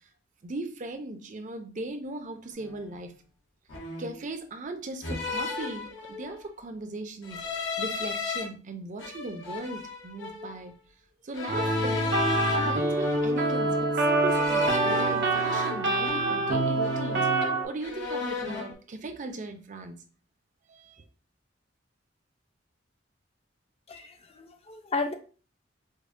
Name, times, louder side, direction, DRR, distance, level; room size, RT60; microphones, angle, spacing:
voice 1, 0.4-3.1 4.0-10.8 11.2-20.0 20.7-21.0, right 2 dB, 40° right, 0.5 m, -38 dB
sound 1, 2.6-2.8 3.7-4.2 5.0-6.4 7.2-8.4 9.0-10.5 11.3-13.7 14.3-16.5 16.8-17.5 17.8-18.7, left 4 dB, 80° left, 1.0 m, -35 dB
sound 2, 11.5-17.6, right 2 dB, 65° right, 0.9 m, -26 dB
voice 2, 23.9-25.1, left 3 dB, 35° left, 0.5 m, -33 dB
5.2 x 2.1 x 2.6 m
head